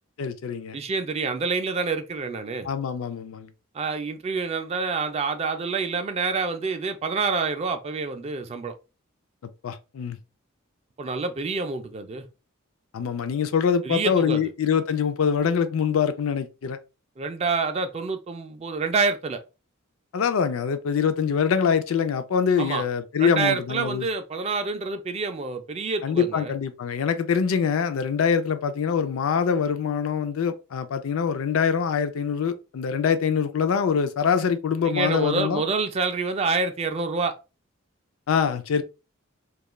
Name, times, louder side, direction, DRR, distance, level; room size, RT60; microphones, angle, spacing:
voice 1, 0.2-0.8 2.6-3.5 9.6-10.2 12.9-16.8 20.1-24.1 26.0-35.6 38.3-38.8, left 6 dB, 70° left, 0.4 m, -24 dB
voice 2, 0.7-2.7 3.7-8.7 11.0-12.2 13.8-14.5 17.2-19.4 22.6-22.8 23.2-26.5 34.8-37.3, right 4 dB, 30° right, 0.3 m, -27 dB
2.3 x 2.2 x 2.9 m
head